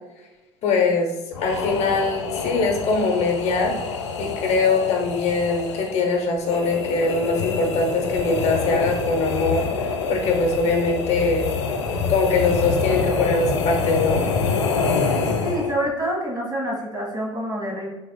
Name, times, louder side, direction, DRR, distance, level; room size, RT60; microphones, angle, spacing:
voice 1, 0.6-1.1 1.4-3.7 4.2-11.5 12.1-14.3, left 3 dB, 50° left, 2 dB, 0.8 m, -22 dB
sound 1, 1.3-15.9, left 5 dB, 85° left, 0.4 m, -26 dB
voice 2, 15.4-17.9, equal, 30° right, -3 dB, 1.5 m, -27 dB
3.4 x 3.3 x 2.2 m, 1.0 s
hypercardioid pair, 70°, 14 cm